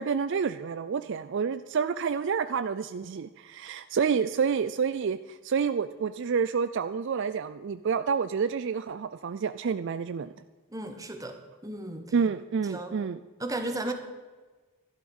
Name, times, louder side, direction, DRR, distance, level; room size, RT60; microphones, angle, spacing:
voice 1, 0.0-10.3 12.1-13.2, right 6 dB, 55° right, 13 dB, 0.4 m, -29 dB
voice 2, 10.7-12.1 12.7-13.0 13.4-13.9, right 2 dB, 15° right, 6 dB, 1.3 m, -35 dB
12.5 x 11.5 x 5.4 m, 1.3 s
head